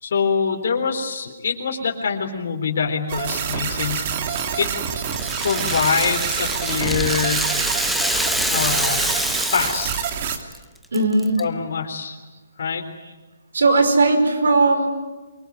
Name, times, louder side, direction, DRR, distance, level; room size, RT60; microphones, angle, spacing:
voice 1, 0.0-4.7 5.4-7.5 8.5-9.0 9.5-9.9 11.4-12.2 12.6-12.8, left 6 dB, 65° left, 1 dB, 3.9 m, -24 dB
sound 1, 3.1-10.4, right 7 dB, 40° right, 2.7 m, -27 dB
Rattle (instrument), 4.3-10.1 10.4-10.6 10.9-11.4, equal, ahead, 1.0 m, -26 dB
voice 2, 10.9-11.4 13.5-14.9, right 3 dB, 85° right, 7 dB, 5.2 m, -17 dB
24.0 x 22.5 x 9.6 m, 1.2 s
hypercardioid pair, 155°, 0 cm